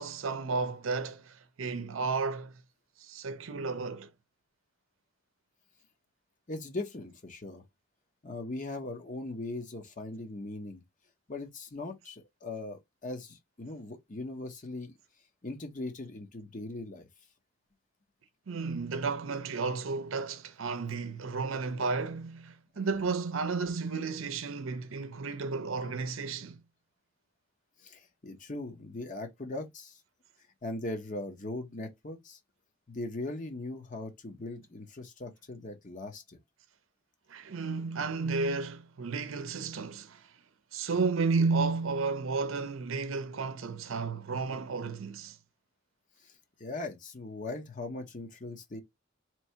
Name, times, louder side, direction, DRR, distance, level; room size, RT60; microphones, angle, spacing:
voice 1, 0.0-2.5 3.0-4.1 18.5-26.6 37.3-40.2 40.7-45.4, right 4 dB, 75° right, 0.6 m, -32 dB
voice 2, 6.5-7.6 8.2-10.8 11.3-14.9 15.4-17.1 27.8-30.0 30.6-32.4 32.9-36.4 46.2-46.3 46.6-48.8, left 2 dB, 40° left, 0.8 m, -39 dB
3.0 x 2.7 x 4.3 m
head